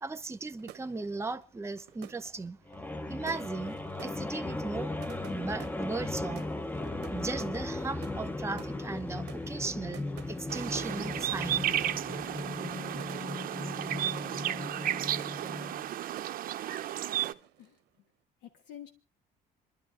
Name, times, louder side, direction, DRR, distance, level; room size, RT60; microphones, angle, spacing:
voice 1, 0.0-2.6 3.1-5.0 5.3-6.5 7.1-11.6, right 3 dB, 15° right, 0.8 m, -37 dB
sound 1, 0.6-17.0 17.2-17.8, right 13 dB, 85° right, 0.9 m, -52 dB
sound 2, 2.7-15.9, left 2 dB, 10° left, 0.6 m, -37 dB
sound 3, 10.5-17.3, right 12 dB, 60° right, 0.6 m, -33 dB
voice 2, 18.4-18.9, left 11 dB, 85° left, 1.3 m, -49 dB
28.5 x 11.5 x 2.5 m
cardioid pair, 110°, 17 cm